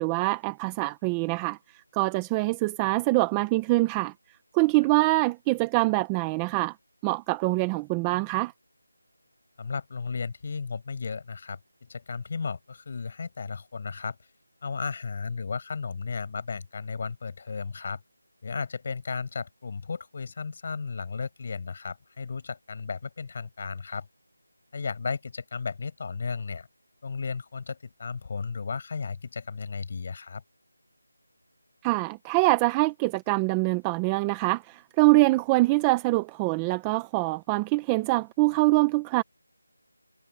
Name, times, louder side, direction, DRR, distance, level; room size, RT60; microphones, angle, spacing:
voice 1, 0.0-1.6 1.9-4.1 4.5-6.7 7.0-8.5 31.8-39.2, right 22 dB, 5° right, 0.5 m, -24 dB
voice 2, 9.6-14.2 14.6-18.0 18.4-24.1 24.7-26.7 27.0-30.4, left 5 dB, 25° left, 7.8 m, -34 dB
figure-of-eight pair, 180°, 0 cm